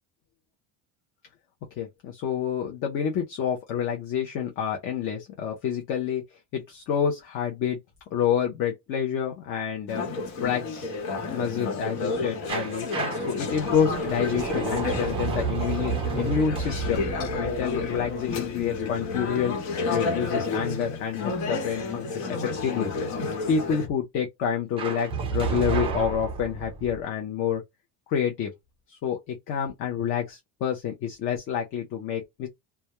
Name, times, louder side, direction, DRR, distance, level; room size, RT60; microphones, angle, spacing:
voice 1, 1.8-6.2 6.5-7.8 8.1-10.0 10.4-10.9 11.3-12.9 13.3-17.1 17.4-19.6 19.9-22.9 23.5-27.6 28.1-28.5 28.9-32.5, left 8 dB, 40° left, 0.5 m, -28 dB
Conversation / Chatter, 9.9-23.9, left 3 dB, 70° left, 1.2 m, -31 dB
sound 1, 12.5-19.3 24.8-27.0, right 5 dB, 15° right, 0.3 m, -31 dB
2.2 x 2.2 x 2.8 m
cardioid pair, 170°, 34 cm